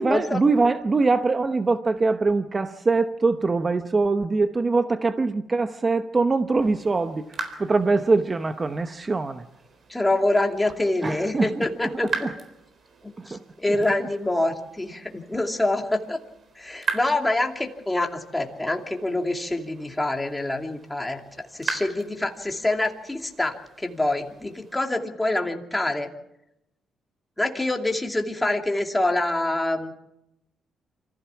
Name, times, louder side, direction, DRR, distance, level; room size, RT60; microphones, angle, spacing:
voice 1, 0.0-7.3 7.6-9.5 11.0-11.7 12.2-12.3 13.2-13.4 13.7-13.8, right 3 dB, 30° right, 0.9 m, -23 dB
sound 1, 6.6-24.8, right 5 dB, 50° right, 4.0 m, -40 dB
voice 2, 9.9-12.1 13.0-16.2 16.6-21.2 21.6-26.1 27.4-29.9, left 2 dB, 10° left, 2.6 m, -26 dB
25.5 x 15.5 x 7.2 m
cardioid pair, 90°, 0 cm